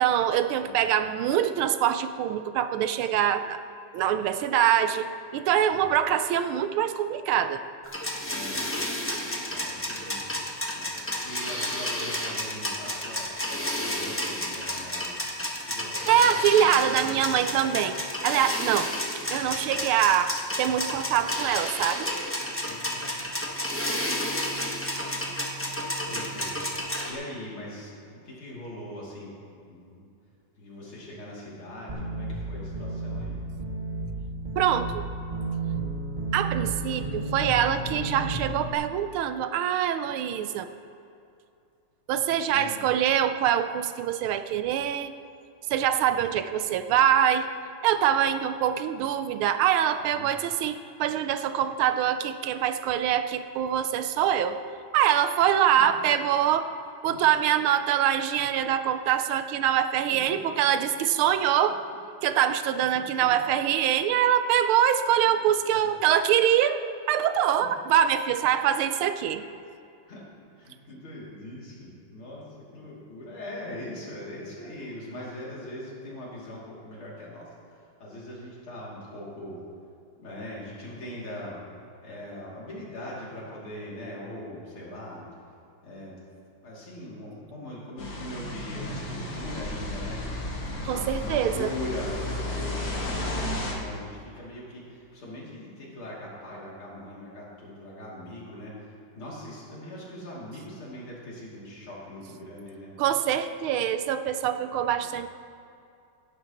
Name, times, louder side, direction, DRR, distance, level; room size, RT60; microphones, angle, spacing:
voice 1, 0.0-3.6 3.9-7.6 16.1-17.9 18.2-22.1 34.6-35.0 36.3-40.7 42.1-45.1 45.7-47.5 47.8-54.6 54.9-56.7 57.0-61.8 62.2-66.8 67.1-69.4 90.8-91.7 103.0-105.3, right 10 dB, 85° right, 10 dB, 1.5 m, -24 dB
sound 1, 7.9-27.1, left 1 dB, 15° left, 0.4 m, -31 dB
voice 2, 8.3-8.6 9.5-10.3 10.8-15.2 15.6-17.8 19.6-19.8 22.7-23.2 26.0-26.6 27.1-30.1 30.6-33.4 42.5-42.8 50.1-50.3 57.1-57.2 60.1-60.4 62.9-63.3 67.6-67.7 70.1-70.3 70.6-79.6 80.2-81.6 82.0-85.3 85.8-86.2 86.6-90.2 90.7-102.9 104.8-105.1, left 1 dB, 80° left, -6 dB, 3.6 m, -41 dB
sound 2, 31.9-38.7, right 2 dB, 25° right, 1.1 m, -32 dB
sound 3, 88.0-93.7, left 1 dB, 50° left, 2.4 m, -33 dB
17.0 x 11.0 x 3.0 m, 2.5 s
omnidirectional pair, 2.3 m